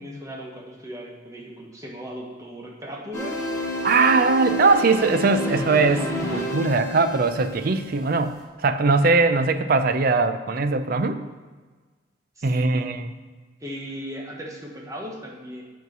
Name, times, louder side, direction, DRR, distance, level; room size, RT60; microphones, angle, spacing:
voice 1, 0.0-3.4 12.4-12.9 13.6-15.6, equal, 15° right, -1 dB, 1.2 m, -37 dB
sound 1, 3.1-8.4, left 1 dB, 15° left, 1.3 m, -30 dB
voice 2, 3.8-11.2 12.4-13.0, right 3 dB, 50° right, 9 dB, 0.5 m, -21 dB
8.2 x 4.6 x 6.0 m, 1.4 s
head